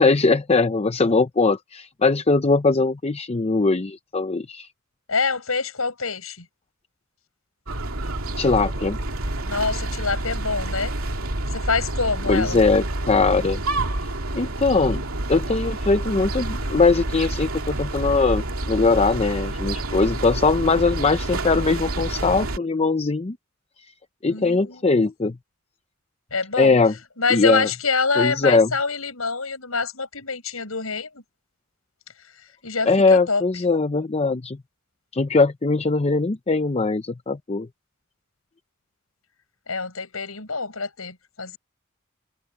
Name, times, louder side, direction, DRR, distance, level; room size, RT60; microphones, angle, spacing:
voice 1, 0.0-4.7 8.4-9.0 12.3-13.6 14.3-15.0 15.3-23.4 23.8-23.9 24.2-25.4 26.6-26.9 27.3-27.7 28.2-28.7 32.9-34.6 35.1-37.7, left 3 dB, 30° left, 0.6 m, -20 dB
voice 2, 5.1-6.4 9.4-10.9 11.5-12.6 24.3-25.0 26.3-26.8 27.2-31.2 32.6-33.4 39.7-41.6, left 4 dB, 85° left, 6.4 m, -26 dB
sound 1, 7.7-22.6, right 2 dB, 80° right, 2.6 m, -28 dB
head